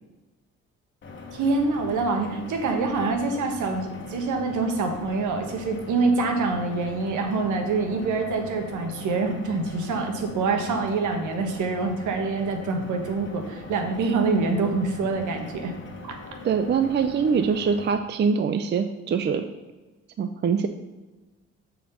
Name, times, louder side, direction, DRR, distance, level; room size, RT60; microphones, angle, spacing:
sound 1, 1.0-17.9, left 3 dB, 40° left, 1.4 m, -41 dB
voice 1, 1.3-15.7 16.1-16.2, right 3 dB, 75° right, 4 dB, 1.3 m, -25 dB
voice 2, 16.4-19.5 20.2-20.7, right 6 dB, 35° right, 8 dB, 0.5 m, -24 dB
7.1 x 4.4 x 5.5 m, 1.2 s
cardioid pair, 90°, 30 cm